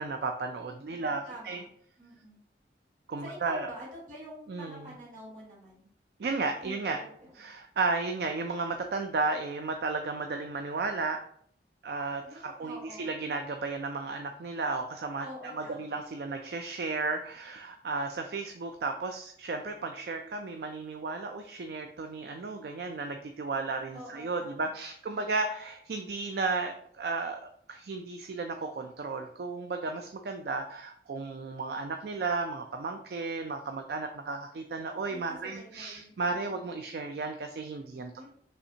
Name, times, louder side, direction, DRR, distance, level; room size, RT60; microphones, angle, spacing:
voice 1, 0.0-1.6 3.1-3.7 4.5-4.9 6.2-7.0 7.3-11.2 11.8-38.3, right 3 dB, 60° right, 5 dB, 0.4 m, -34 dB
voice 2, 0.6-1.7 2.0-2.4 3.2-5.9 6.6-7.5 12.2-13.1 15.2-16.0 23.9-24.7 25.1-25.4 35.1-36.6 38.1-38.3, equal, 45° right, -6 dB, 2.0 m, -47 dB
5.6 x 3.3 x 2.7 m, 0.63 s
head